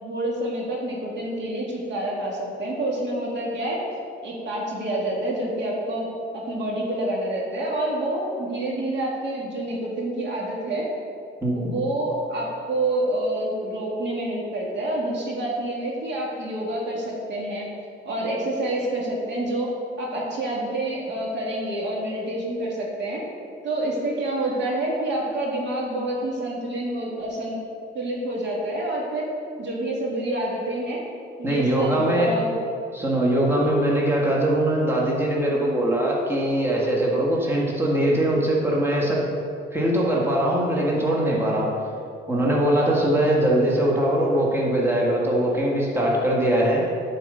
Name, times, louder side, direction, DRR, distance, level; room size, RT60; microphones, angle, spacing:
voice 1, 0.0-3.8 4.2-6.1 6.3-10.9 11.5-17.7 18.1-19.7 20.0-23.2 23.6-27.6 27.9-29.2 29.6-31.0 31.4-32.5, right 1 dB, 65° right, -3 dB, 2.1 m, -27 dB
voice 2, 31.4-32.3 32.9-39.2 39.7-41.7 42.3-46.8, right 1 dB, 10° right, -4 dB, 1.7 m, -21 dB
9.2 x 4.7 x 6.7 m, 2.4 s
cardioid pair, 90°, 20 cm